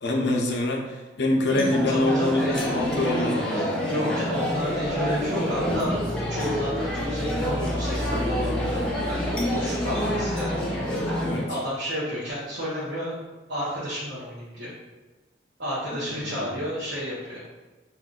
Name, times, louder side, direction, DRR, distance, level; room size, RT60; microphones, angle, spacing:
voice 1, 0.0-3.8 11.2-11.5 16.0-16.5, left 2 dB, 65° left, 0 dB, 0.5 m, -25 dB
sound 1, 1.5-11.4, equal, 5° left, 0.5 m, -27 dB
voice 2, 1.9-2.5 3.5-10.7 11.5-13.2 13.5-14.7 15.6-17.4, equal, 65° right, -9 dB, 0.7 m, -32 dB
2.5 x 2.3 x 3.6 m, 1.2 s
head